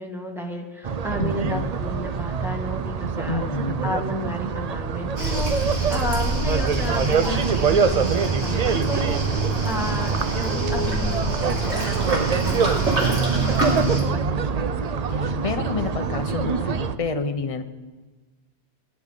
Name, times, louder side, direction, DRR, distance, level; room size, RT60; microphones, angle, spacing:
voice 1, 0.0-3.4 3.8-14.6, left 1 dB, ahead, 0 dB, 1.7 m, -33 dB
sound 1, 0.8-17.0, right 5 dB, 45° right, 0.5 m, -25 dB
voice 2, 1.2-1.7 3.3-3.9 15.1-17.6, left 3 dB, 35° left, 7 dB, 0.9 m, -29 dB
Waves surf, 5.2-14.0, right 2 dB, 85° right, 2.9 m, -27 dB
21.0 x 11.0 x 3.8 m, 1.2 s
omnidirectional pair, 1.1 m